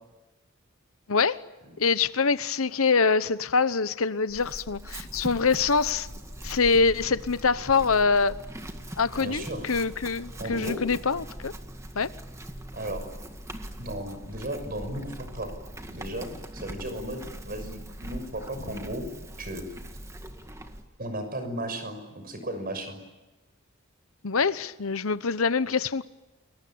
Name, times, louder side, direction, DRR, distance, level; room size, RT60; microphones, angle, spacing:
voice 1, 1.1-1.4 1.8-6.1 6.4-8.3 9.0-11.5 11.9-12.1 24.2-26.0, left 4 dB, 90° left, 1.0 m, -24 dB
Chewing mastication / Livestock farm animals working animals, 4.3-20.9, right 1 dB, 15° right, 1.9 m, -41 dB
voice 2, 9.2-9.6 10.4-10.8 12.7-13.1 13.8-15.5 15.9-19.1 19.4-19.7 21.0-23.0, right 1 dB, 45° right, 6.4 m, -35 dB
30.0 x 22.5 x 8.8 m
head